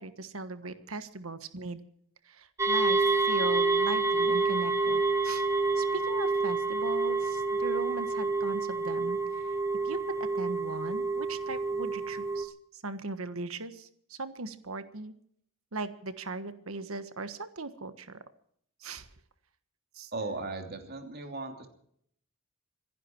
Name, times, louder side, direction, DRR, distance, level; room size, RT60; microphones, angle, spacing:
voice 1, 0.0-1.8 2.2-5.5 5.8-9.5 9.8-15.1 15.7-18.2 18.8-19.1 19.9-20.1, right 3 dB, 85° right, 11 dB, 1.4 m, -39 dB
sound 1, 2.6-12.4, right 3 dB, 15° right, 1.4 m, -28 dB
voice 2, 20.1-21.7, right 3 dB, 50° right, 5 dB, 3.0 m, -37 dB
26.0 x 11.0 x 4.6 m, 0.65 s
head